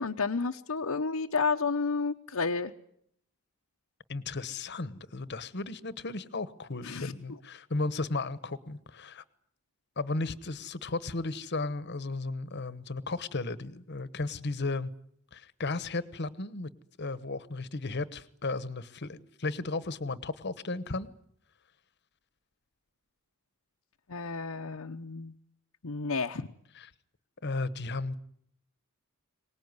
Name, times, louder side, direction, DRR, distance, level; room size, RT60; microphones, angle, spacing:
voice 1, 0.0-2.7 6.8-7.1 24.1-25.3 25.8-26.5, left 4 dB, 75° left, 2 dB, 0.9 m, -31 dB
voice 2, 4.1-9.2 10.0-14.9 15.3-16.7 17.0-21.1 26.7-26.9 27.4-28.2, left 3 dB, 50° left, 16 dB, 1.1 m, -35 dB
24.0 x 19.5 x 9.6 m, 0.70 s
head